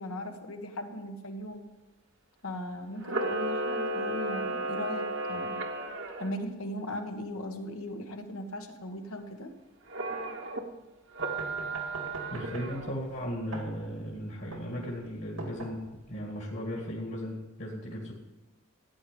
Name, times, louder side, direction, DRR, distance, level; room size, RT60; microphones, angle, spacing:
voice 1, 0.0-1.7 2.4-5.6 6.2-9.5, left 1 dB, 75° left, 4 dB, 1.6 m, -38 dB
Camera, 3.0-6.3 9.9-10.6 11.1-13.0, right 2 dB, 55° right, 1.3 m, -33 dB
sound 1, 11.2-16.2, right 2 dB, 75° right, 2.3 m, -43 dB
voice 2, 12.3-18.1, equal, 50° left, -1 dB, 2.1 m, -36 dB
14.0 x 9.2 x 5.3 m, 1.1 s
head